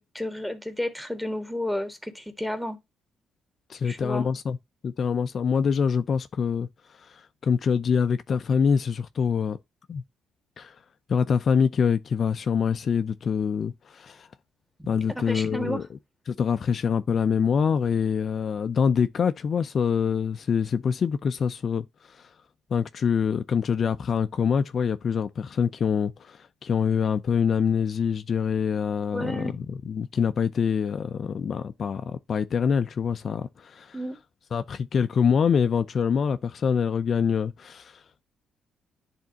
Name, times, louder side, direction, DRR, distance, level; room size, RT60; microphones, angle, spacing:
voice 1, 0.0-2.8 3.8-4.3 14.8-15.9 29.1-29.6 33.9-34.2, left 1 dB, ahead, 1.6 m, -32 dB
voice 2, 3.7-4.6 4.8-6.7 7.0-9.6 9.9-10.0 10.6-10.8 11.1-14.3 14.9-15.9 16.3-22.3 22.7-34.0 34.5-38.0, left 6 dB, 50° left, 0.5 m, -25 dB
10.5 x 3.6 x 2.8 m
cardioid pair, 90°, 0 cm